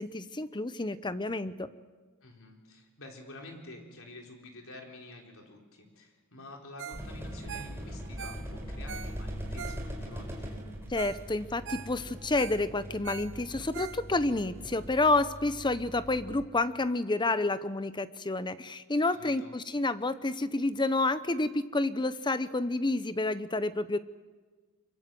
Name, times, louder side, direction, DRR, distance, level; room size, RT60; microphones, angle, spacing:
voice 1, 0.0-1.7 10.9-24.0, left 2 dB, 20° left, 13 dB, 0.8 m, -29 dB
voice 2, 2.2-10.5 19.1-19.5, left 2 dB, 65° left, 1 dB, 4.3 m, -49 dB
Ringtone, 6.8-7.1 7.3-10.2 10.7-10.8 11.0-11.2 11.5-14.4 14.8-14.9, right 8 dB, 55° right, 0.9 m, -43 dB
sound 1, 6.9-16.4, equal, 10° right, 4.9 m, -41 dB
24.5 x 23.0 x 7.7 m, 1.4 s
head